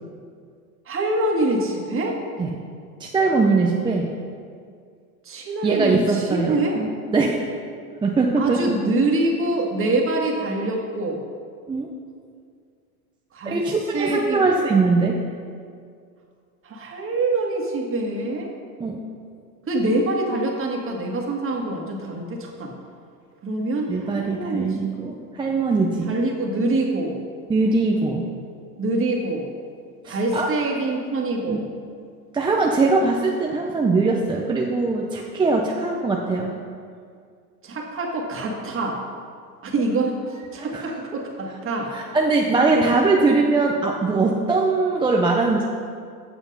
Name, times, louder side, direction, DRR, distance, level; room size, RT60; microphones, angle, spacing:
voice 1, 0.9-2.2 5.3-6.8 8.4-11.2 13.3-13.6 13.9-14.4 16.6-18.5 19.7-22.7 23.4-24.8 25.0-25.1 26.1-27.2 28.8-29.5 30.1-31.6 37.6-39.0 39.6-40.2 40.5-41.9 42.7-42.9, right 2 dB, 25° right, 0 dB, 1.7 m, -25 dB
voice 2, 3.0-4.1 5.6-7.4 8.0-8.6 11.7-11.9 13.5-15.2 18.8-19.0 23.9-26.1 27.5-28.3 30.0-30.5 31.4-31.6 32.3-36.6 40.7-40.9 41.9-45.6, right 3 dB, 10° right, -1 dB, 0.5 m, -21 dB
8.0 x 7.0 x 5.3 m, 2.2 s
hypercardioid pair, 105°, 48 cm